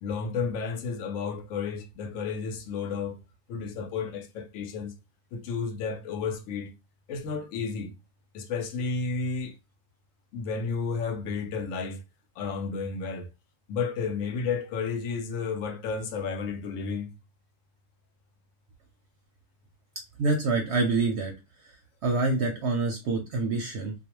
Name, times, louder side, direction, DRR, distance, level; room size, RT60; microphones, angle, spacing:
voice 1, 0.0-3.2 3.5-4.9 5.3-6.7 7.1-7.9 8.3-9.5 10.3-12.0 12.4-13.3 13.7-17.1, left 5 dB, 75° left, 1.0 m, -32 dB
voice 2, 20.2-21.3 21.6-21.7 22.0-23.9, right 3 dB, 65° right, 0.7 m, -26 dB
2.4 x 2.2 x 2.9 m
omnidirectional pair, 1.4 m